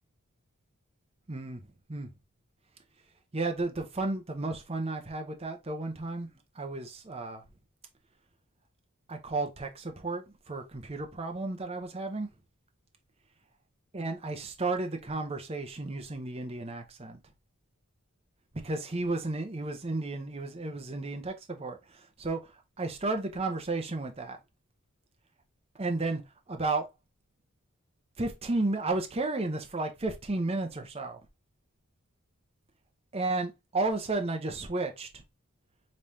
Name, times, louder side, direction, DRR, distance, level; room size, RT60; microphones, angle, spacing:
voice 1, 1.3-1.6 1.9-2.1 3.3-6.3 6.5-7.4 9.1-12.3 13.9-17.2 18.6-22.4 22.8-24.4 25.8-26.2 26.5-26.9 28.2-31.2 33.1-35.1, right 2 dB, 25° right, 0.8 m, -33 dB
5.3 x 3.3 x 2.7 m
head